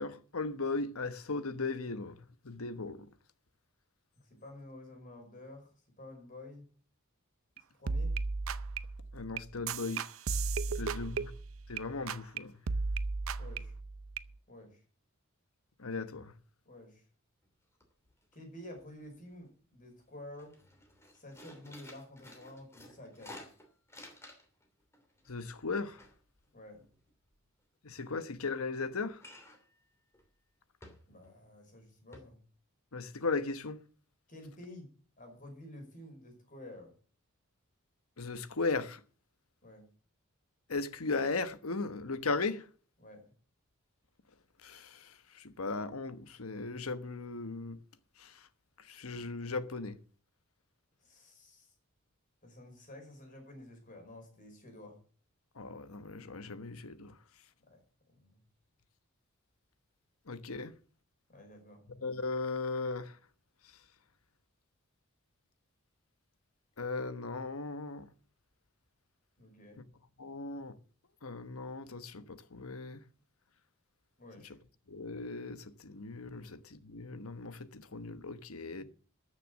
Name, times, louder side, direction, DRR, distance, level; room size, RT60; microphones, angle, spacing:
voice 1, 0.0-2.2 2.4-3.1 9.1-10.0 10.7-11.3 11.7-12.5 15.8-16.3 25.3-26.0 27.8-29.2 32.9-33.8 38.2-39.0 40.7-42.7 44.6-47.8 48.2-48.4 48.9-50.0 55.6-57.1 60.3-60.7 62.0-63.2 66.8-68.1 70.2-70.7 71.2-73.0 74.4-74.6 74.9-78.8, left 3 dB, 90° left, 1.2 m, -37 dB
voice 2, 4.2-6.6 7.8-8.2 10.7-11.3 13.4-13.7 14.5-14.8 16.6-17.0 18.3-20.6 21.1-23.4 26.5-26.8 31.1-32.4 34.3-36.9 39.6-39.9 43.0-43.2 51.0-51.7 52.4-55.0 57.6-57.8 58.1-58.4 61.3-61.8 69.4-69.8 74.2-74.6 76.3-76.4 78.6-78.8, left 1 dB, 40° left, 5.1 m, -51 dB
sound 1, 7.6-7.7 7.9-11.8 12.1-12.4 12.7-14.3, right 4 dB, 75° right, 0.6 m, -35 dB
sound 2, 17.4-17.5 17.8-18.3 18.6-19.5 19.9-20.0 20.3-24.6 24.9-27.4 29.2-29.7 30.1-30.3 30.8-31.4 31.7-31.8 32.1-32.2, left 1 dB, 15° left, 2.9 m, -53 dB
13.5 x 6.7 x 7.6 m
head